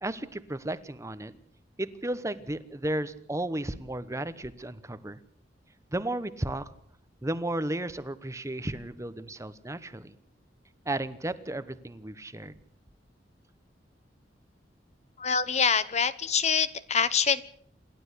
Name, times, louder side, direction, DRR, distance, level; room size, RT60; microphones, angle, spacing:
voice 1, 0.0-1.3 1.8-5.2 5.9-6.7 7.2-10.1 10.8-12.5, right 1 dB, 15° right, 14 dB, 1.0 m, -34 dB
voice 2, 15.2-17.4, left 6 dB, 40° left, 14 dB, 1.0 m, -25 dB
28.0 x 12.5 x 8.4 m, 0.66 s
head